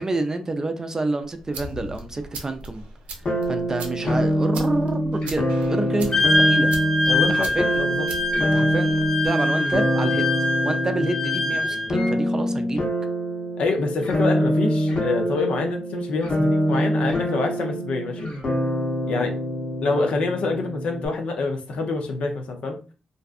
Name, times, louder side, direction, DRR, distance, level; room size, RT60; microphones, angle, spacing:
voice 1, 0.0-2.8 3.5-5.4 5.7-6.7 7.3-7.9 8.5-9.0 9.2-10.3 10.6-12.8, right 2 dB, 30° right, 0.4 m, -28 dB
sound 1, 1.2-9.3, right 2 dB, 85° right, 0.5 m, -40 dB
sound 2, 3.2-21.1, equal, 55° left, 0.9 m, -25 dB
Wind instrument woodwind instrument, 6.1-12.1, left 2 dB, 20° left, 0.7 m, -24 dB
voice 2, 7.1-8.0 13.6-18.2 19.1-19.4 19.8-22.8, left 3 dB, 75° left, 0.6 m, -26 dB
2.6 x 2.3 x 2.4 m
cardioid pair, 70°, 2 cm